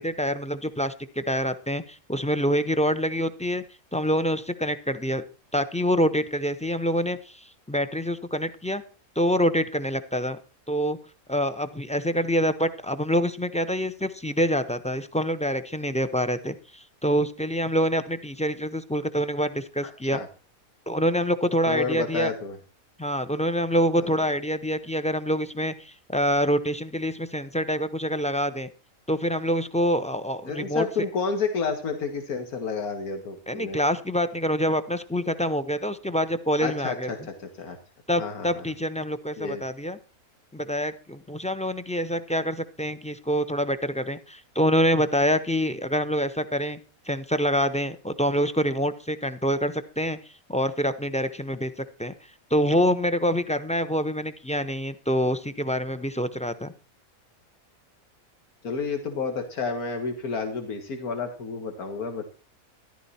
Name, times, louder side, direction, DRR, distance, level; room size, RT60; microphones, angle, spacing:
voice 1, 0.0-3.6 3.9-5.2 5.5-7.4 7.7-8.8 9.2-10.4 10.7-11.0 11.3-20.2 20.9-22.3 23.0-28.7 29.1-30.8 33.5-37.1 38.1-40.0 40.5-46.8 47.1-50.2 50.5-51.7 52.0-52.1 52.5-56.7, equal, 10° left, 11 dB, 0.3 m, -26 dB
voice 2, 21.7-22.6 24.0-24.2 30.4-33.8 36.6-37.8 38.2-38.6 39.4-39.6 58.6-62.3, left 4 dB, 90° left, 5 dB, 2.1 m, -30 dB
13.5 x 12.0 x 4.2 m, 0.35 s
omnidirectional pair, 1.5 m